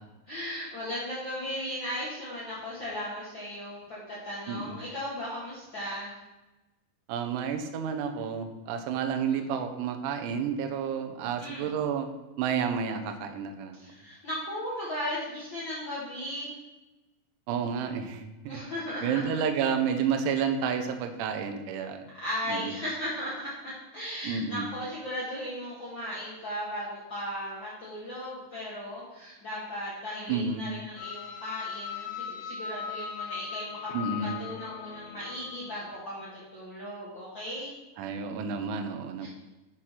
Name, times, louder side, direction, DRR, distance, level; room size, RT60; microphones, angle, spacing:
voice 1, 0.3-6.1 9.3-9.4 11.4-11.7 13.7-16.5 18.4-19.3 22.2-33.9 34.4-37.7 39.2-39.3, equal, 60° left, -8 dB, 1.2 m, -36 dB
voice 2, 4.5-4.8 7.1-12.1 12.4-13.8 17.5-18.6 19.0-22.0 22.5-22.7 24.2-24.7 30.3-30.7 33.9-34.4 38.0-39.3, right 6 dB, 85° right, 6 dB, 1.9 m, -30 dB
sound 1, 31.0-36.0, left 7 dB, 80° left, 2.5 m, -39 dB
6.5 x 4.3 x 5.6 m, 1.1 s
omnidirectional pair, 4.4 m